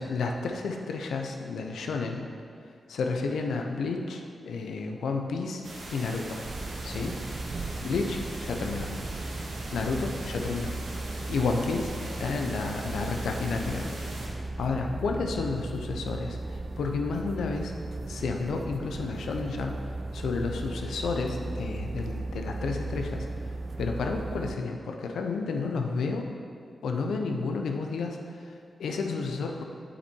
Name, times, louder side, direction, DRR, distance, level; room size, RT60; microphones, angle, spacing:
voice 1, 0.0-2.3 2.9-5.6 5.9-6.4 6.8-7.2 7.8-8.9 9.7-10.7 11.3-14.0 14.6-17.7 18.1-19.8 20.1-23.3 23.8-26.3 26.8-29.6, left 4 dB, 85° left, 3 dB, 0.7 m, -31 dB
sound 1, 5.6-14.3, right 1 dB, 85° right, 1.7 m, -41 dB
sound 2, 6.4-24.5, right 2 dB, 45° right, 0.4 m, -36 dB
8.1 x 6.1 x 4.4 m, 2.3 s
cardioid pair, 50°, 0 cm